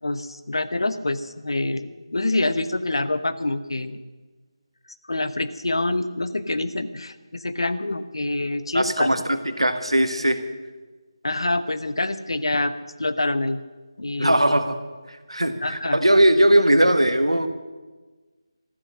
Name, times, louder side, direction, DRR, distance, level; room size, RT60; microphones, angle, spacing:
voice 1, 0.0-4.0 5.1-9.1 11.2-12.7 13.0-13.6 14.0-14.4 15.6-16.0, left 2 dB, 65° left, 12 dB, 1.0 m, -26 dB
voice 2, 8.7-10.4 14.2-14.7 15.1-17.5, right 1 dB, 85° right, 9 dB, 1.5 m, -19 dB
14.0 x 13.0 x 6.3 m, 1.3 s
figure-of-eight pair, 160°, 3 cm